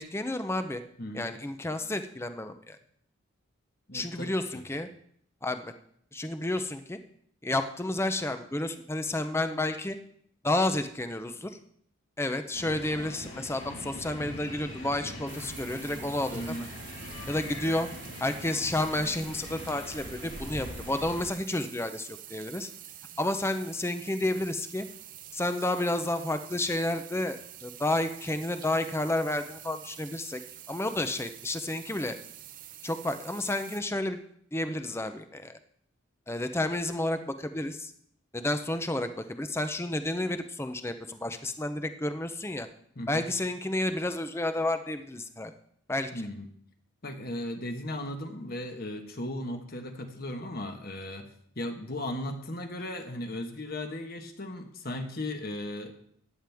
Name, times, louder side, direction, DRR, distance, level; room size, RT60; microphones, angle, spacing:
voice 1, 0.0-0.8 1.1-2.8 3.9-4.9 5.4-5.7 6.1-7.0 7.4-10.0 10.4-11.6 12.2-16.6 17.3-17.9 18.2-22.7 23.2-24.9 25.3-30.4 30.7-32.2 32.8-34.2 34.5-35.6 36.3-37.9 38.3-42.7 43.1-45.5 45.9-46.1, left 1 dB, 10° left, 9 dB, 0.6 m, -31 dB
voice 2, 1.0-1.3 3.9-4.6 16.3-16.7 42.9-43.3 46.1-46.5 47.0-55.9, left 1 dB, 45° left, 5 dB, 1.4 m, -37 dB
sound 1, 12.5-21.3, left 1 dB, 70° left, 6.4 m, -42 dB
sound 2, 15.3-33.8, right 11 dB, 40° right, 0.6 m, -47 dB
15.0 x 10.5 x 3.5 m, 0.65 s
head